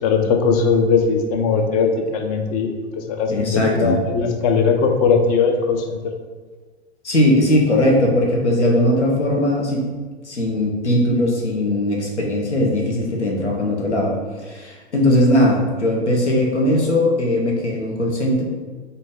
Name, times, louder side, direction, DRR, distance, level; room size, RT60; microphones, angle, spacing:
voice 1, 0.0-6.0, left 5 dB, 35° left, 5 dB, 0.5 m, -19 dB
voice 2, 3.3-4.0 7.0-9.9 10.2-14.1 14.4-18.4, left 1 dB, 85° left, -1 dB, 1.0 m, -19 dB
3.8 x 2.7 x 3.7 m, 1.4 s
figure-of-eight pair, 100°, 34 cm